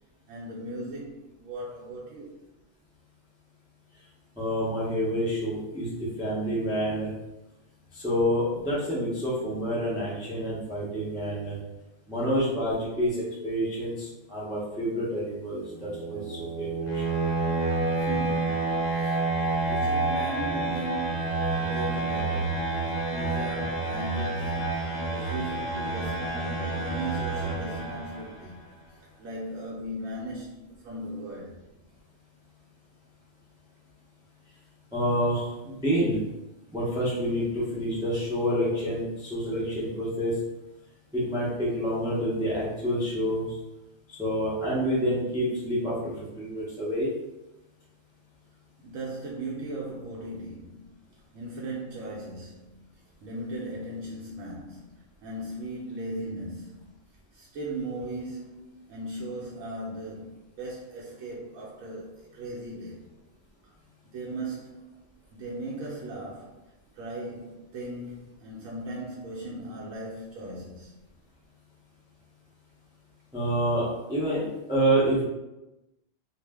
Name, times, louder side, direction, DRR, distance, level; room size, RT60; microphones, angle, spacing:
voice 1, 0.3-2.4 18.0-19.2 19.6-22.7 23.1-24.8 25.0-28.6 29.2-31.6 48.8-51.0 51.3-56.9 57.3-63.0 64.1-65.0 65.3-66.6 66.9-71.0, right 1 dB, 80° right, -4 dB, 1.0 m, -38 dB
voice 2, 4.4-5.9 6.2-7.1 7.9-11.5 12.1-17.0 34.9-36.2 36.7-40.3 41.1-43.4 44.1-47.1 73.3-75.2, equal, 5° right, -7 dB, 0.4 m, -28 dB
sound 1, 15.6-28.5, right 3 dB, 75° left, 0.9 m, -29 dB
2.5 x 2.0 x 3.3 m, 0.99 s
omnidirectional pair, 1.4 m